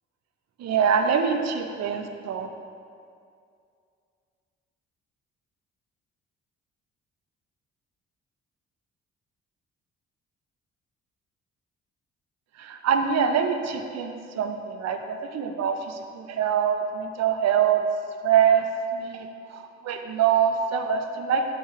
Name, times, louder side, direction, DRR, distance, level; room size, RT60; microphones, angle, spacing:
voice 1, 0.6-2.5 12.6-17.8 18.2-18.6 18.9-21.4, right 7 dB, 45° right, 5 dB, 0.7 m, -24 dB
9.2 x 3.6 x 3.1 m, 2.3 s
figure-of-eight pair, 40°, 36 cm